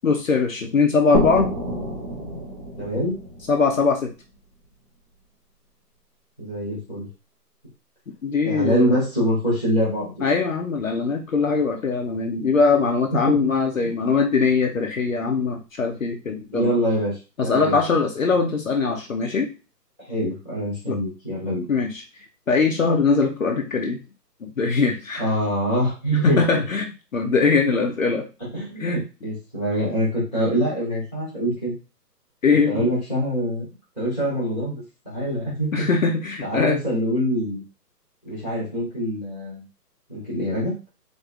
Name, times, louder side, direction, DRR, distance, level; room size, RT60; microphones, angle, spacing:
voice 1, 0.0-1.5 3.5-4.1 8.2-8.9 10.2-16.7 17.4-19.5 20.9-21.0 21.7-24.0 24.4-25.3 26.2-28.3 28.8-29.0 32.4-32.9 35.7-36.8, left 4 dB, 55° left, 3 dB, 0.8 m, -21 dB
sound 1, 1.1-4.7, equal, 20° right, 1.0 m, -28 dB
voice 2, 2.8-3.2 6.4-7.1 8.4-10.2 13.1-13.4 13.8-13.9 16.5-17.8 20.1-21.6 25.2-26.6 28.5-31.7 32.7-33.6 34.0-35.9 36.4-37.6 38.2-39.6 40.1-40.7, equal, 5° right, -8 dB, 1.5 m, -24 dB
4.0 x 3.7 x 3.6 m, 0.30 s
hypercardioid pair, 180°, 49 cm